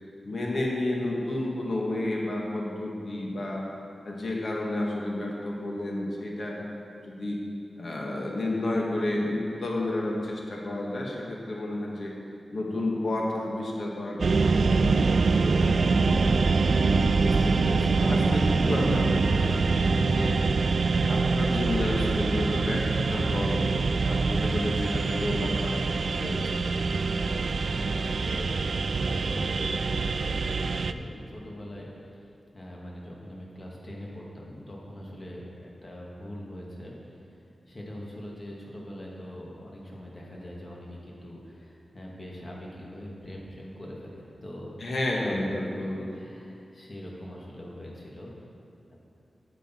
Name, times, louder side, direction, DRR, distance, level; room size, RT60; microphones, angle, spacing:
voice 1, 0.2-3.7 4.0-6.6 7.0-7.4 7.8-12.1 12.5-15.7 17.2-20.4 20.9-26.6 44.8-46.1, left 1 dB, 60° left, -2 dB, 1.6 m, -31 dB
sound 1, 14.2-30.9, right 4 dB, 65° right, 0.3 m, -25 dB
voice 2, 14.9-15.6 27.5-32.3 32.5-36.9 37.7-45.5 45.8-48.3 48.9-49.0, equal, 40° left, -3 dB, 2.0 m, -42 dB
9.8 x 8.3 x 4.5 m, 2.5 s
wide cardioid pair, 90°, 0 cm